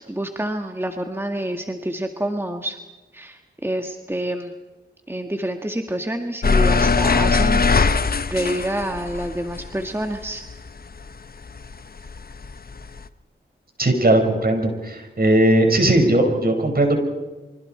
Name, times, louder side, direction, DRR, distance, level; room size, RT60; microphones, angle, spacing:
voice 1, 0.0-2.8 3.1-4.5 5.1-10.4, right 1 dB, 10° right, 5 dB, 1.9 m, -28 dB
sound 1, 6.4-11.1 11.4-13.0, left 4 dB, 50° left, 1.1 m, -21 dB
voice 2, 13.8-17.0, right 1 dB, 50° right, 4 dB, 5.5 m, -18 dB
29.5 x 24.5 x 4.5 m, 1.2 s
cardioid pair, 45°, 20 cm